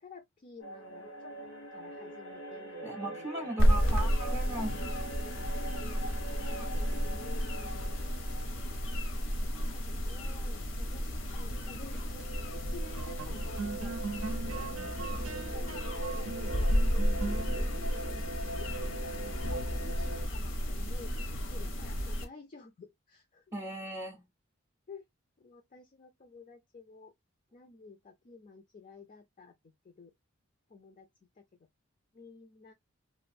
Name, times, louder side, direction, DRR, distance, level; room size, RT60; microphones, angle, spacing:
voice 1, 0.0-4.1 6.3-8.0 9.3-11.0 11.3-16.7 17.1-17.7 18.6-18.7 19.0-23.4 24.9-25.1 25.4-27.1 27.5-30.1 30.7-31.1 31.4-31.5 32.1-32.7, left 4 dB, 40° left, 0.5 m, -52 dB
sound 1, 0.6-9.9 11.5-20.2, right 1 dB, 85° left, 1.3 m, -43 dB
voice 2, 2.8-4.8 5.6-5.7 6.4-6.7 23.5-24.2, right 1 dB, 15° right, 0.5 m, -38 dB
sound 2, 3.6-22.2, equal, 65° left, 0.8 m, -32 dB
sound 3, 12.0-21.6, right 3 dB, 75° right, 0.5 m, -42 dB
3.1 x 2.4 x 2.5 m
head